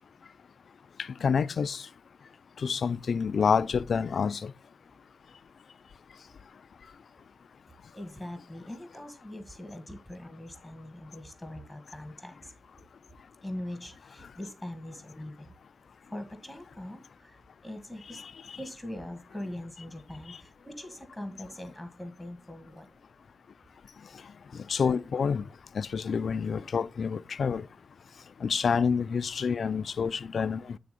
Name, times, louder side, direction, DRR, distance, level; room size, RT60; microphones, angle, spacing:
voice 1, 1.2-1.8 2.6-4.5 24.7-25.4 25.8-27.7 28.4-30.6, left 6 dB, 75° left, 0.4 m, -27 dB
voice 2, 7.9-12.5 13.4-15.5 16.1-17.4 17.6-18.2 18.5-22.9, left 1 dB, ahead, 1.5 m, -42 dB
9.4 x 3.5 x 5.1 m
cardioid pair, 50°, 0 cm